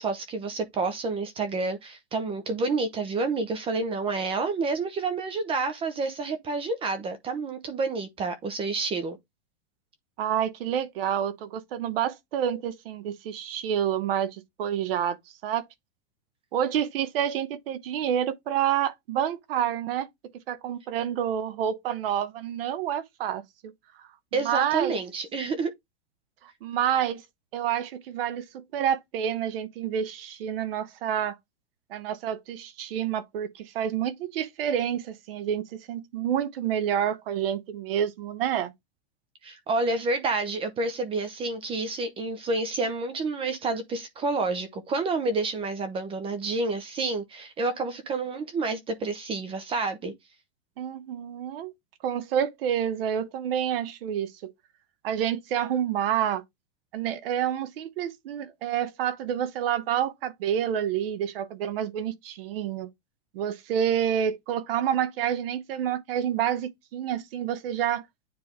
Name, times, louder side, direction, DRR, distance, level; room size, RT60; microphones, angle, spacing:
voice 1, 0.0-9.2 24.3-25.7 39.4-50.1, right 3 dB, 15° right, 0.7 m, -29 dB
voice 2, 10.2-15.2 15.4-15.7 16.5-20.1 20.5-23.7 24.3-25.0 26.6-27.2 27.5-31.4 31.9-38.7 50.8-51.7 52.0-54.5 55.0-56.4 56.9-62.9 63.3-68.1, right 9 dB, 55° right, 1.1 m, -28 dB
9.6 x 3.4 x 3.3 m
supercardioid pair, 150°, 34 cm